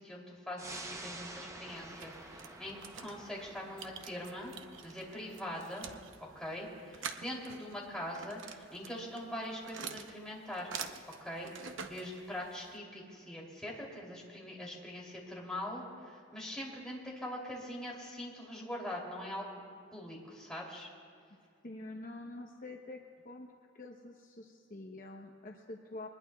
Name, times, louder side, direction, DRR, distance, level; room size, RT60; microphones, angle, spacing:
voice 1, 0.0-4.5 4.8-5.9 6.3-10.7 11.2-19.6 19.9-20.9, left 1 dB, 5° left, -4 dB, 3.0 m, -42 dB
sound 1, 0.6-11.6 11.9-12.0, right 2 dB, 15° right, 0.8 m, -52 dB
sound 2, 1.7-12.8, right 6 dB, 80° right, 0.8 m, -48 dB
voice 2, 21.6-23.5 23.7-26.1, left 2 dB, 45° left, 1 dB, 0.8 m, -46 dB
23.5 x 20.5 x 2.3 m, 2.2 s
head